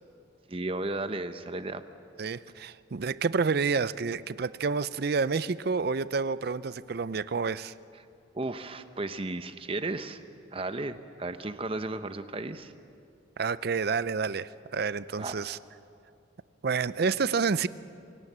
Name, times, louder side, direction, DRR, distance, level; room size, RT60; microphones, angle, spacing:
voice 1, 0.5-1.8 8.3-10.2 10.5-12.7 15.2-15.4, right 2 dB, 30° right, 10 dB, 0.8 m, -34 dB
voice 2, 2.2-7.7 13.4-15.6 16.6-17.7, right 5 dB, 55° right, 16 dB, 0.5 m, -29 dB
27.5 x 17.5 x 7.4 m, 2.5 s
head